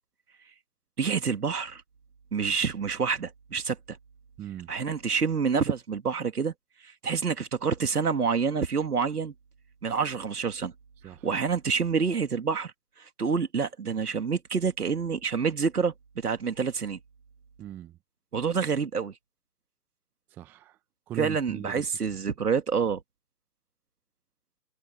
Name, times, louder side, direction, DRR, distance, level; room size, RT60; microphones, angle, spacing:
voice 1, 1.0-1.8 2.3-4.0 4.7-6.5 6.8-9.3 9.8-10.7 11.0-17.0 18.3-19.2 21.2-23.0, right 5 dB, 65° right, 2.9 m, -28 dB
voice 2, 4.4-4.7 11.0-11.3 17.6-18.0 20.3-20.8 21.1-21.8, right 12 dB, 5° right, 0.8 m, -39 dB
figure-of-eight pair, 140°, 50 cm